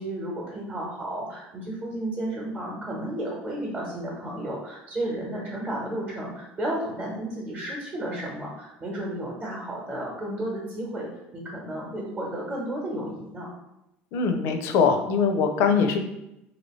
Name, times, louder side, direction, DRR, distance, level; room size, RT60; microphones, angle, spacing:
voice 1, 0.0-11.1 11.3-13.5, right 1 dB, 30° right, -3 dB, 0.9 m, -32 dB
voice 2, 14.1-16.0, left 5 dB, 65° left, 6 dB, 0.4 m, -22 dB
2.8 x 2.7 x 3.0 m, 0.87 s
cardioid pair, 125°, 5 cm